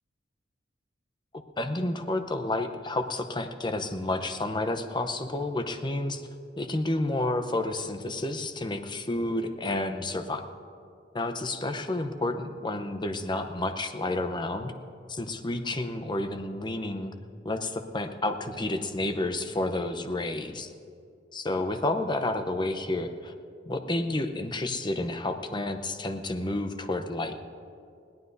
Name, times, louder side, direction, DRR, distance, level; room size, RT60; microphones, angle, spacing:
voice 1, 1.6-6.3 6.6-10.4 11.1-14.7 15.1-17.1 17.4-20.7 21.3-23.3 23.7-27.3, left 2 dB, 25° left, 8 dB, 0.8 m, -30 dB
21.0 x 17.0 x 2.7 m, 2.4 s
head